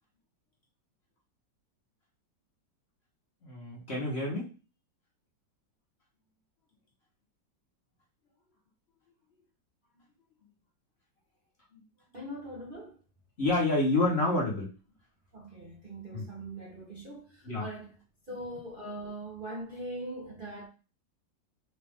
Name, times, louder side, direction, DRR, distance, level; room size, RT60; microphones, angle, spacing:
voice 1, 3.4-4.5 11.7-11.8 13.4-14.7 16.1-16.3 17.4-17.7, left 2 dB, 40° left, 1.1 m, -28 dB
voice 2, 12.1-13.0 15.3-17.9 18.3-20.7, right 1 dB, 40° right, 0.8 m, -41 dB
4.1 x 2.5 x 3.5 m
omnidirectional pair, 2.0 m